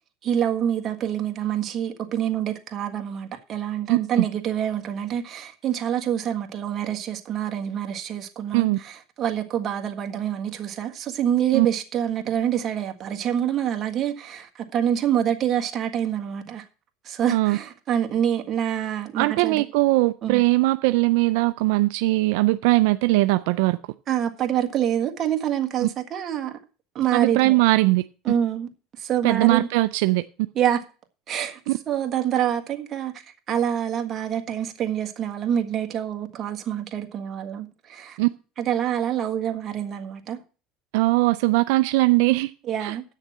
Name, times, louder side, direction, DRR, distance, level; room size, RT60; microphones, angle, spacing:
voice 1, 0.2-16.6 17.0-19.7 20.2-20.4 24.1-26.6 26.9-27.6 28.2-28.7 29.0-29.7 30.5-30.8 31.3-31.6 31.9-38.2 38.6-40.4 42.6-43.0, right 10 dB, 40° right, 1.6 m, -26 dB
voice 2, 3.9-4.3 8.5-8.8 11.5-11.7 17.3-17.6 19.2-23.8 27.1-28.0 29.2-30.2 31.7-31.8 38.2-38.3 40.9-42.5 42.8-43.0, right 20 dB, 80° right, 0.4 m, -20 dB
8.5 x 6.6 x 7.2 m
supercardioid pair, 120°, 0 cm